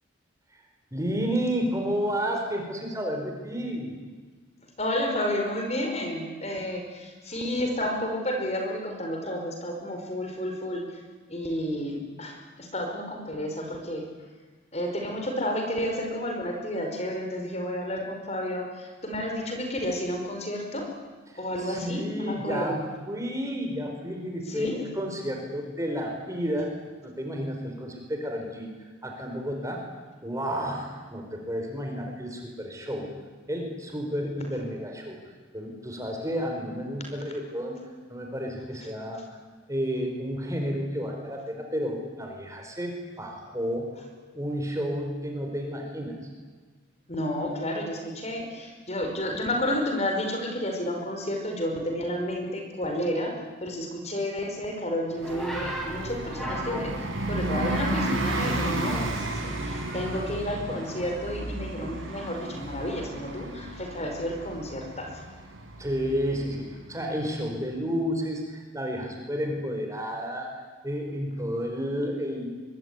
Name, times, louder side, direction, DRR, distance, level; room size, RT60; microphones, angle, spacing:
voice 1, 0.9-4.0 21.3-22.8 23.1-26.7 27.0-28.7 29.0-29.8 30.2-33.1 33.5-35.2 35.5-37.8 38.1-39.4 39.7-43.9 44.3-46.2 65.8-70.5 70.8-72.5, equal, 15° right, 2 dB, 4.9 m, -31 dB
voice 2, 4.8-11.0 11.3-14.1 14.7-20.9 21.4-22.8 24.5-24.8 47.1-53.3 53.6-65.2, left 1 dB, 35° left, 3 dB, 5.3 m, -31 dB
Bus, 55.1-67.4, right 1 dB, 90° right, 7.5 m, -33 dB
sound 1, 55.2-59.1 59.5-60.3 60.7-63.3 64.2-64.5, right 1 dB, ahead, 6.3 m, -40 dB
24.0 x 24.0 x 9.9 m, 1.4 s
head